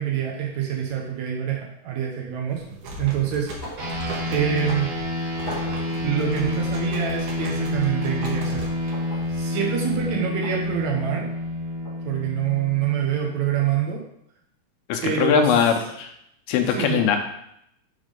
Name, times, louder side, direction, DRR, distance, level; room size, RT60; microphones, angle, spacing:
voice 1, 0.0-3.5 4.3-4.9 6.0-8.7 9.3-11.3 12.0-14.0 15.0-15.5 16.7-17.0, right 9 dB, 90° right, 0 dB, 1.6 m, -26 dB
sound 1, 2.5-9.3, right 2 dB, 65° right, 2.3 m, -38 dB
sound 2, 3.6-4.0 4.3-4.4 5.5-5.9 7.0-7.2 8.9-9.3 10.4-10.6 11.8-12.0, left 1 dB, 35° left, 1.8 m, -38 dB
sound 3, 3.8-13.5, left 1 dB, 45° right, 2.3 m, -28 dB
voice 2, 14.9-16.1 16.5-17.2, left 7 dB, 80° left, 4 dB, 2.6 m, -21 dB
6.6 x 3.7 x 5.1 m, 0.74 s
omnidirectional pair, 4.4 m